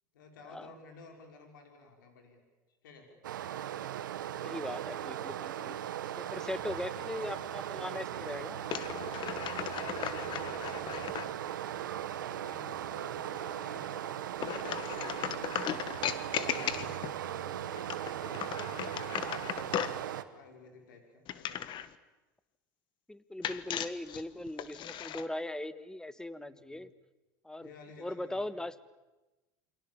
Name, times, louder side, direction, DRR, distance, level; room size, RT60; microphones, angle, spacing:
voice 1, 0.1-2.4 2.8-3.2 5.9-6.9 9.2-9.6 9.9-14.3 14.7-21.7 26.4-26.9 27.6-28.6, left 3 dB, 85° left, 3 dB, 5.6 m, -53 dB
Stream, 3.2-20.2, right 11 dB, 85° right, 1.4 m, -38 dB
voice 2, 4.4-5.7 6.2-8.7 23.1-26.9 27.4-27.7 28.0-28.7, left 1 dB, 5° left, 15 dB, 1.4 m, -39 dB
sound 1, 8.7-11.3 14.4-17.2 17.8-20.0 21.3-21.9 23.4-25.3, left 10 dB, 50° left, 1.5 m, -37 dB
28.5 x 24.0 x 7.2 m, 1.1 s
hypercardioid pair, 85°, 10 cm